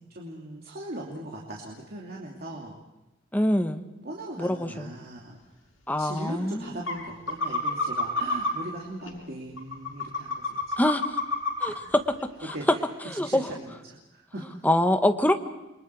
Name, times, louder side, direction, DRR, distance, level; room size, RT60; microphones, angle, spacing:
voice 1, 0.1-2.7 4.0-5.4 6.0-10.7 11.6-11.9 12.5-12.6 13.1-14.7, right 1 dB, 50° right, -2 dB, 2.8 m, -39 dB
voice 2, 3.3-3.8 4.4-4.9 5.9-6.7 10.8-11.2 11.6-12.0 12.5-12.6 13.1-13.5 14.6-15.3, left 1 dB, 10° left, 6 dB, 1.2 m, -24 dB
sound 1, 6.2-6.3 6.9-7.0 7.3-8.5 9.0-9.1 9.6-11.7 12.1-12.2 12.5-12.6, left 4 dB, 80° left, 6.4 m, -27 dB
29.0 x 24.0 x 4.8 m, 0.98 s
head